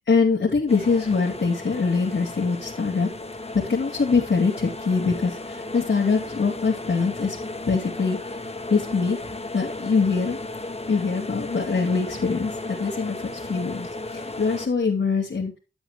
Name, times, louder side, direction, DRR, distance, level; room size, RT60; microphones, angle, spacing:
voice 1, 0.1-3.1 3.5-7.4 7.7-8.4 8.7-10.4 10.9-15.6, left 4 dB, 70° left, -5 dB, 2.7 m, -23 dB
sound 1, 0.7-14.7, left 2 dB, 30° left, 1.3 m, -35 dB
11.5 x 8.0 x 3.1 m, 0.30 s
wide cardioid pair, 65°, 21 cm